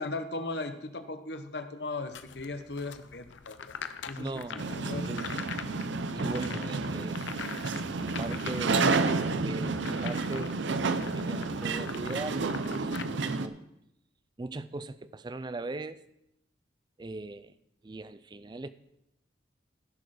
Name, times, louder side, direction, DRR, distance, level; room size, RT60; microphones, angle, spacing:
voice 1, 0.0-3.6 4.0-5.3 6.4-6.6, left 2 dB, 60° left, 9 dB, 0.9 m, -38 dB
sound 1, 2.1-13.0, left 7 dB, 80° left, 0.6 m, -44 dB
voice 2, 4.1-5.5 6.1-7.3 8.0-9.0 9.4-10.6 10.8-13.6 14.4-16.0 17.0-17.6 17.8-18.7, right 2 dB, 25° right, 14 dB, 0.4 m, -40 dB
sound 2, 4.6-13.5, right 3 dB, 80° right, 0.6 m, -30 dB
15.0 x 6.5 x 4.9 m, 0.83 s
head